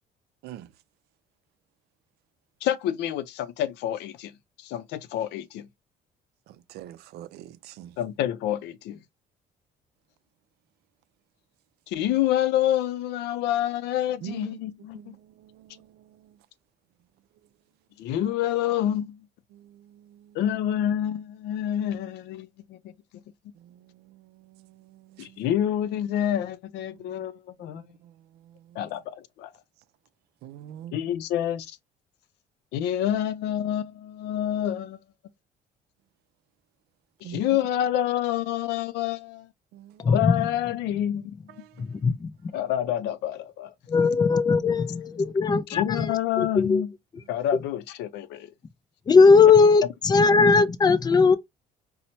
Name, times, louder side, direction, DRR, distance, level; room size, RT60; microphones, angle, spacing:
voice 1, 2.6-4.3 4.6-5.7 8.0-9.0 11.9-15.2 18.0-19.2 20.3-22.8 25.2-27.8 28.8-29.5 30.9-31.7 32.7-35.0 37.2-39.5 40.1-41.5 42.5-43.7 45.7-46.9 47.3-48.5, left 11 dB, 85° left, 0.5 m, -27 dB
voice 2, 6.7-7.9 14.2-14.5 14.9-15.9 19.5-20.4 23.6-25.4 27.0-27.3 27.6-28.1 28.4-28.8 30.4-31.0 37.2-37.4 39.7-40.1 41.6-41.7, right 11 dB, 75° right, 0.4 m, -45 dB
voice 3, 40.0-40.4 41.9-42.3 43.9-46.8 49.1-51.4, left 4 dB, 25° left, 0.4 m, -19 dB
4.3 x 2.1 x 2.7 m
cardioid pair, 110°, 17 cm